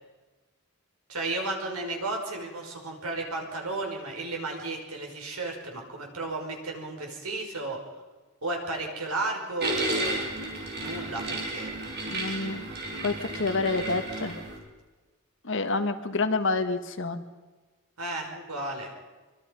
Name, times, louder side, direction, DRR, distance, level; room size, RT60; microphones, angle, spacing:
voice 1, 1.1-7.8 8.4-10.2 10.8-11.7 18.0-18.9, right 2 dB, 85° right, 1 dB, 5.8 m, -33 dB
sound 1, 9.6-14.6, right 2 dB, 50° right, 5.1 m, -32 dB
voice 2, 12.1-12.6 13.0-14.4 15.4-17.2, left 3 dB, 60° left, 7 dB, 1.7 m, -28 dB
25.0 x 24.5 x 5.5 m, 1.3 s
head